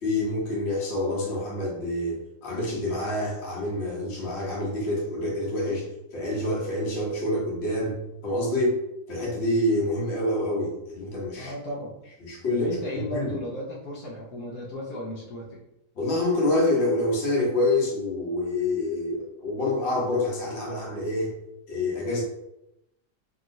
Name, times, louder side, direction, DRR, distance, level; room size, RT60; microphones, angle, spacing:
voice 1, 0.0-8.0 8.2-8.8 9.1-11.5 12.2-12.8 13.1-13.3 16.0-21.3 21.7-22.2, left 1 dB, 50° left, -4 dB, 1.1 m, -27 dB
voice 2, 11.4-11.9 12.5-15.6, left 1 dB, 70° left, -5 dB, 1.1 m, -34 dB
2.9 x 2.9 x 2.6 m, 0.86 s
omnidirectional pair, 1.7 m